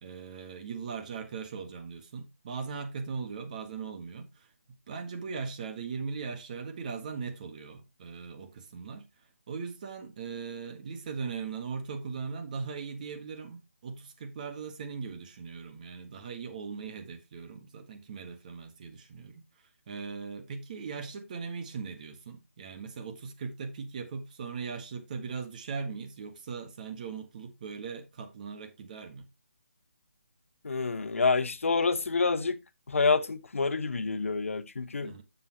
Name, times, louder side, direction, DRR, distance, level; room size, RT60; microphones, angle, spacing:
voice 1, 0.0-19.4 19.9-29.3 35.0-35.2, right 5 dB, 35° right, 1.5 m, -39 dB
voice 2, 30.6-32.6 32.9-35.1, left 4 dB, 75° left, 0.9 m, -27 dB
9.6 x 6.9 x 2.9 m
figure-of-eight pair, 160°, 7 cm